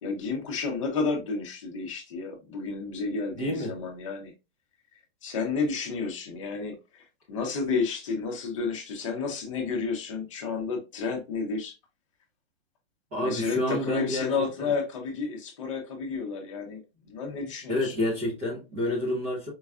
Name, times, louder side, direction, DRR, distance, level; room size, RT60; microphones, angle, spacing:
voice 1, 0.0-4.3 5.2-11.7 13.2-17.9, left 4 dB, 30° left, 0.7 m, -31 dB
voice 2, 3.3-3.7 13.1-14.3 14.6-14.7 17.7-19.5, left 1 dB, 15° right, 0.5 m, -29 dB
4.5 x 2.2 x 2.4 m
hypercardioid pair, 175°, 32 cm